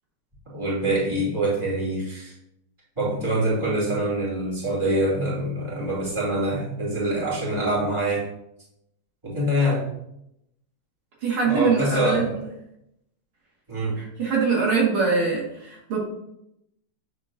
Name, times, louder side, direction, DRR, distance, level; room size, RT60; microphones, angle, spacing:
voice 1, 0.5-2.3 3.0-8.3 9.2-9.8 11.4-12.4 13.7-14.0, right 1 dB, 15° right, -7 dB, 2.6 m, -25 dB
voice 2, 11.2-12.3 14.0-16.0, right 4 dB, 70° right, -4 dB, 2.5 m, -23 dB
8.1 x 6.8 x 2.5 m, 0.80 s
omnidirectional pair, 2.4 m